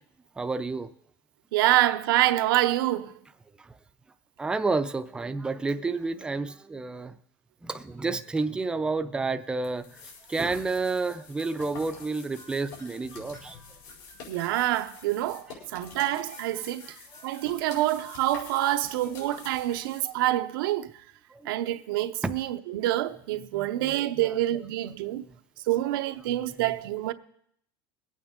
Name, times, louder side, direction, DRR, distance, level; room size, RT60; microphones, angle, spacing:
voice 1, 0.4-0.9 3.6-3.7 4.4-7.1 7.6-10.0 10.3-13.6 15.5-15.7 19.7-19.9 21.3-21.5 22.2-22.4 23.4-24.4 24.8-25.2 26.3-26.8, right 3 dB, 10° right, 0.4 m, -31 dB
voice 2, 1.5-3.1 14.3-15.4 15.7-16.9 17.2-20.9 21.5-25.2 25.7-27.1, right 15 dB, 90° right, 0.7 m, -26 dB
sound 1, 9.6-20.0, left 4 dB, 75° left, 4.4 m, -47 dB
22.0 x 8.6 x 3.7 m
supercardioid pair, 150°, 11 cm